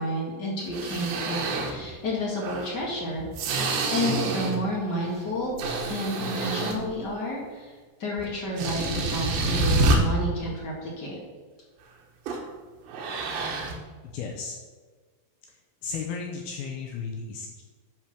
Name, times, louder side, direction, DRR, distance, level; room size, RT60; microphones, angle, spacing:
voice 1, 0.0-5.5 5.9-7.7 8.0-11.2, equal, 50° left, -4 dB, 1.3 m, -31 dB
sound 1, 0.6-1.9 2.4-4.7 5.1-7.0 8.2-8.3 8.6-10.0 12.3-12.5 12.9-13.8, right 2 dB, 70° right, 2.8 m, -28 dB
voice 2, 14.0-14.6 15.8-17.6, left 5 dB, 75° left, 0 dB, 2.6 m, -34 dB
11.0 x 4.7 x 5.9 m, 1.4 s
omnidirectional pair, 4.9 m